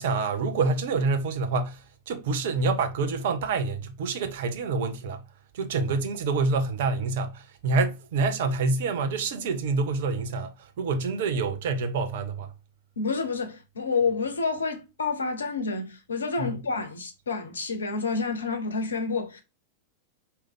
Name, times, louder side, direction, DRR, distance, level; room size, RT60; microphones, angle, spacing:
voice 1, 0.0-5.2 5.5-12.5 16.4-16.5, right 4 dB, 55° right, 0.8 m, -27 dB
voice 2, 13.0-19.4, left 4 dB, 70° left, 0.9 m, -29 dB
4.8 x 2.9 x 3.5 m
figure-of-eight pair, 90°, 0 cm